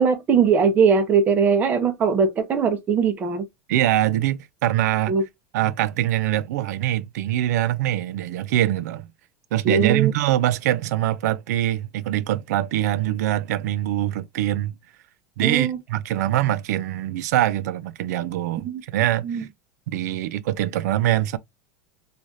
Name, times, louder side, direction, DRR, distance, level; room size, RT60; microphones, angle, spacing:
voice 1, 0.0-3.5 5.1-5.2 9.7-10.1 15.4-15.8 18.6-18.8 19.2-19.4, right 6 dB, 20° right, 0.5 m, -20 dB
voice 2, 3.7-5.2 5.5-9.1 9.5-14.7 15.4-19.5 19.9-21.4, right 13 dB, 85° right, 0.4 m, -23 dB
3.1 x 2.3 x 2.6 m
supercardioid pair, 165°, 9 cm